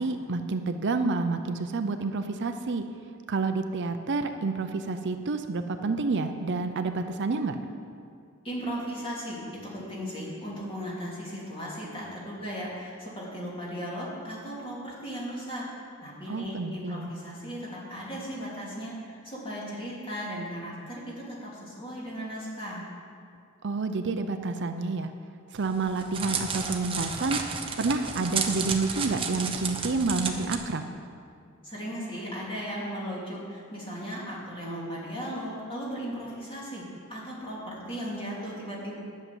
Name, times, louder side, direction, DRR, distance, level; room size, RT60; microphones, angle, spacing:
voice 1, 0.0-2.8 3.3-7.6 16.3-17.1 23.6-25.1 25.5-27.4 27.8-30.8, right 3 dB, 55° right, 7 dB, 0.6 m, -29 dB
voice 2, 8.4-15.6 16.0-22.9 31.6-36.8 37.1-39.0, equal, 25° left, -6 dB, 3.0 m, -36 dB
Crackle, 25.6-30.6, right 5 dB, 25° right, 0.9 m, -32 dB
11.0 x 6.7 x 9.1 m, 2.3 s
head